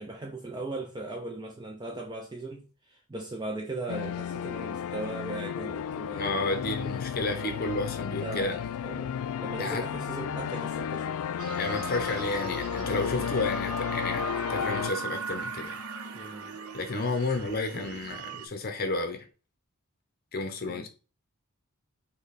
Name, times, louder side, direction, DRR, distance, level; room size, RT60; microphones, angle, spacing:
voice 1, 0.0-6.5 7.3-7.6 8.2-11.2 13.1-13.4 16.1-16.6 20.7-20.9, right 2 dB, 20° right, 0.4 m, -38 dB
sound 1, 3.9-14.9, left 8 dB, 80° left, 0.3 m, -33 dB
voice 2, 6.1-8.6 9.6-9.8 11.6-15.9 16.7-19.2 20.3-20.9, left 2 dB, 45° left, 0.7 m, -31 dB
sound 2, 11.4-18.5, right 4 dB, 85° right, 0.7 m, -38 dB
5.1 x 2.2 x 4.1 m
head